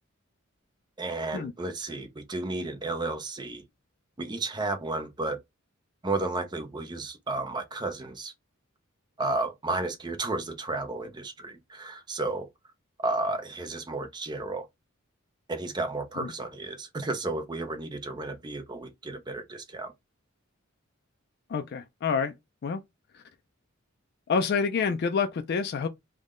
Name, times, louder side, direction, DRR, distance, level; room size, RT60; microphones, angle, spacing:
voice 1, 1.0-3.6 4.2-5.4 6.0-8.3 9.2-12.5 13.0-14.7 15.5-19.9, right 2 dB, 20° right, 0.5 m, -32 dB
voice 2, 21.5-22.3 22.6-22.8 23.1-23.2 24.3-25.9, left 5 dB, 50° left, 0.3 m, -28 dB
3.6 x 2.1 x 3.6 m
head